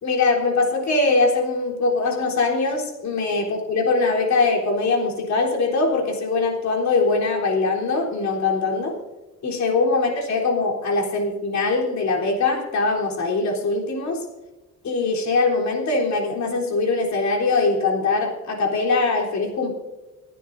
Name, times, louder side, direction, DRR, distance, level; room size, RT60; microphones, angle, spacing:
voice 1, 0.0-8.9 9.4-14.2 14.8-19.7, left 3 dB, 65° left, -1 dB, 3.7 m, -22 dB
27.5 x 9.7 x 2.7 m, 1.1 s
cardioid pair, 90°, 30 cm